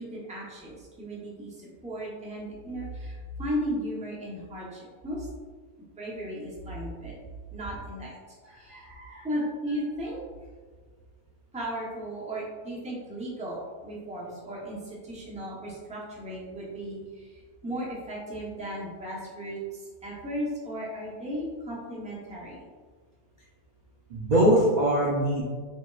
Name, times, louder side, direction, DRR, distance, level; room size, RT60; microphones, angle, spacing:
voice 1, 0.0-5.3 6.0-7.1 7.5-8.2 8.6-8.8 9.2-10.2 11.5-22.6, equal, 5° right, -6 dB, 0.7 m, -35 dB
voice 2, 8.5-9.3 24.1-25.4, right 1 dB, 50° right, -6 dB, 0.5 m, -23 dB
5.1 x 2.9 x 2.4 m, 1.5 s
omnidirectional pair, 1.5 m